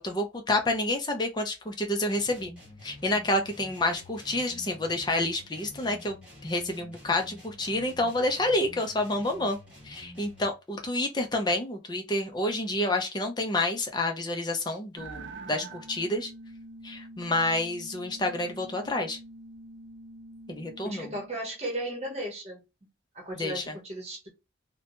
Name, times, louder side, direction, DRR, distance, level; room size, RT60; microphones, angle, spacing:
voice 1, 0.0-2.5 2.8-6.2 6.4-9.6 9.8-16.3 16.8-19.2 20.5-21.1 23.4-23.8, left 1 dB, 20° left, 0.5 m, -29 dB
sound 1, 2.1-10.6, left 1 dB, 5° right, 1.2 m, -49 dB
sound 2, 15.0-21.3, right 2 dB, 75° right, 0.5 m, -45 dB
voice 2, 20.8-22.6 23.1-24.3, right 1 dB, 35° right, 1.0 m, -35 dB
2.8 x 2.1 x 2.7 m
head